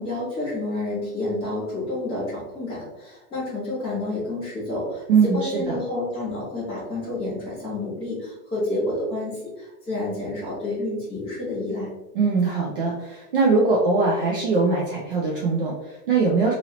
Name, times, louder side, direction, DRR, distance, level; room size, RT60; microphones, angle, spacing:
voice 1, 0.0-11.9, left 2 dB, 10° left, -9 dB, 1.4 m, -29 dB
voice 2, 5.1-5.8 12.1-16.5, right 4 dB, 40° right, -3 dB, 0.4 m, -21 dB
2.8 x 2.7 x 2.9 m, 0.98 s
supercardioid pair, 165°, 46 cm